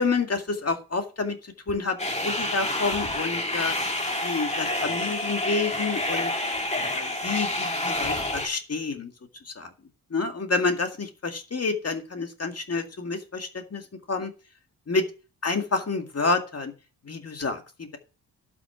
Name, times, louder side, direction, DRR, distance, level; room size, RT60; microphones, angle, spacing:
voice 1, 0.0-3.7 4.2-6.3 6.9-9.1 9.5-9.7 10.1-13.8 14.1-14.3 14.9-15.0 15.4-16.7 17.1-18.0, left 4 dB, 40° left, 5 dB, 2.0 m, -28 dB
sound 1, 2.0-8.5, left 1 dB, 15° left, 2.3 m, -28 dB
12.0 x 6.1 x 5.9 m, 0.34 s
cardioid pair, 75°, 40 cm